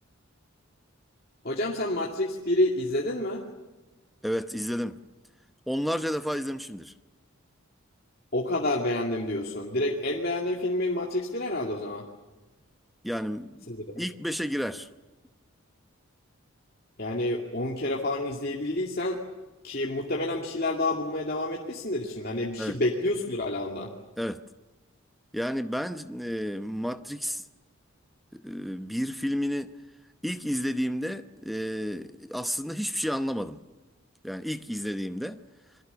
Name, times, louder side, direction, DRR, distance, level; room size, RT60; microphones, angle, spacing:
voice 1, 1.4-3.4 8.3-12.0 13.7-13.8 17.0-19.2 19.6-23.9, left 1 dB, 45° left, 2.4 m, -28 dB
voice 2, 4.2-5.0 5.7-6.9 13.0-14.9 22.6-22.8 24.2-24.4 25.3-27.4 28.3-29.7 30.2-33.6 34.2-35.4, equal, ahead, 0.8 m, -31 dB
29.0 x 23.0 x 6.9 m
head